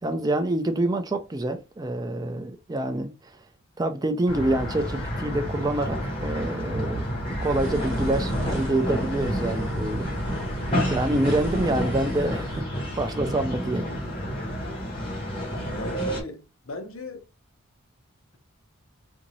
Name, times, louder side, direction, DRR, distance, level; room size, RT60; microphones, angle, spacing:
voice 1, 0.0-3.4 3.8-10.1 10.9-13.9, right 1 dB, 20° right, 0.3 m, -27 dB
sound 1, 4.3-16.2, equal, 25° left, 1.5 m, -29 dB
sound 2, 7.4-12.6, right 2 dB, 70° right, 0.7 m, -37 dB
voice 2, 15.7-17.2, left 2 dB, 70° left, 0.8 m, -38 dB
3.7 x 2.6 x 3.0 m
head